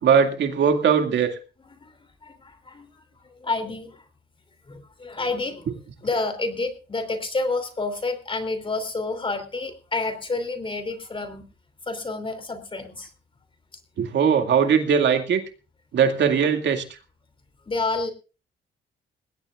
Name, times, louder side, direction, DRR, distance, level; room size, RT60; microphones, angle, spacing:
voice 1, 0.0-1.3 14.0-15.4 15.9-16.8, right 7 dB, 65° right, 6 dB, 2.3 m, -20 dB
voice 2, 2.2-4.0 4.7-11.5 11.9-13.1 17.7-18.1, left 3 dB, 25° left, 7 dB, 3.1 m, -29 dB
20.0 x 17.0 x 2.5 m, 0.34 s
cardioid pair, 90°, 20 cm